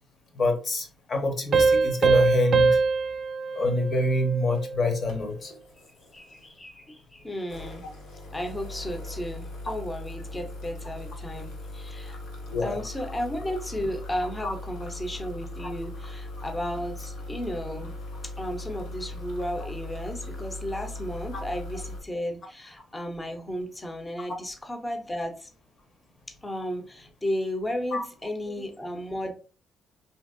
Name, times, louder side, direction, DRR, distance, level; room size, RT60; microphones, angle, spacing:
voice 1, 0.4-2.8 3.5-5.5 12.5-12.8 14.4-14.5 27.9-28.0, left 2 dB, 50° left, 4 dB, 0.8 m, -26 dB
Piano, 1.5-4.8, right 4 dB, 60° right, 0.3 m, -23 dB
sound 1, 4.4-4.6 5.1-6.6 7.4-22.0, left 2 dB, 80° left, 0.9 m, -39 dB
voice 2, 6.1-7.9 8.3-12.2 12.6-17.9 18.2-25.5 26.4-29.3, equal, 15° left, 5 dB, 0.6 m, -34 dB
2.8 x 2.6 x 2.5 m, 0.38 s
cardioid pair, 90°, 0 cm